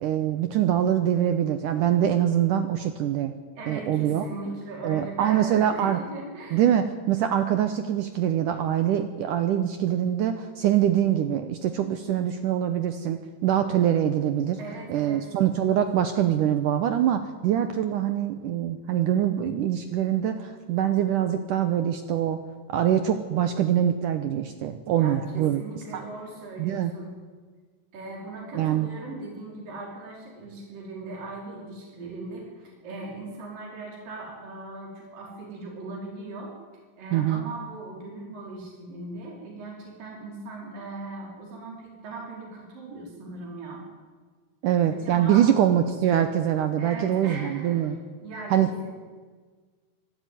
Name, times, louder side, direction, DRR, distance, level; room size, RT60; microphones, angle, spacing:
voice 1, 0.0-3.3 3.7-4.2 4.8-6.0 6.5-14.6 14.9-22.4 22.7-25.6 25.9-26.0 26.6-26.9 28.5-28.9 37.1-37.5 44.6-48.0 48.5-48.7, right 10 dB, 80° right, 8 dB, 1.9 m, -24 dB
voice 2, 3.6-6.7 14.6-15.2 24.9-27.1 27.9-36.5 37.0-43.8 44.9-45.6 46.8-47.9 48.2-48.7, right 2 dB, 55° right, -2 dB, 6.3 m, -39 dB
25.0 x 13.0 x 9.3 m, 1.5 s
omnidirectional pair, 4.8 m